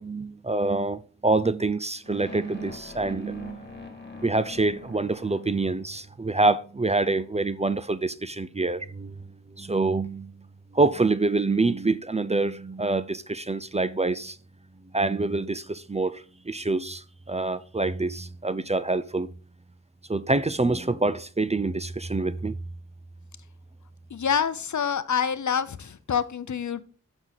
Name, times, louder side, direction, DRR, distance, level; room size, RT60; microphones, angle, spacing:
voice 1, 0.0-3.8 4.2-9.3 9.6-10.4 10.7-14.4 14.9-19.3 20.1-22.6, right 3 dB, 20° right, 0.5 m, -26 dB
sound 1, 2.0-6.1, left 3 dB, 35° left, 2.2 m, -44 dB
voice 2, 24.1-26.8, left 7 dB, 65° left, 0.6 m, -27 dB
7.2 x 6.2 x 4.0 m
cardioid pair, 45°, 31 cm